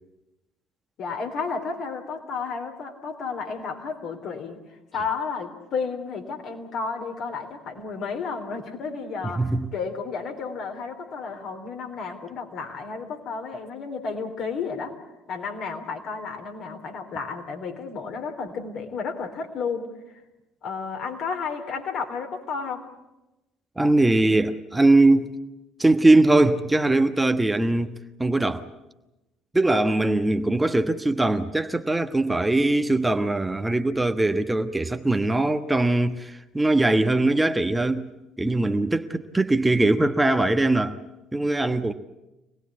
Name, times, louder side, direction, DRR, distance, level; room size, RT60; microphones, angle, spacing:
voice 1, 1.0-4.6 4.9-15.0 15.3-19.9 20.6-22.9, left 5 dB, 55° left, 3.5 m, -32 dB
voice 2, 9.4-9.7 23.8-25.3 25.8-27.9 28.2-28.7 29.5-38.1 38.4-41.0 41.3-41.9, right 2 dB, 10° right, 1.2 m, -21 dB
25.5 x 19.0 x 8.5 m
figure-of-eight pair, 55°, 0 cm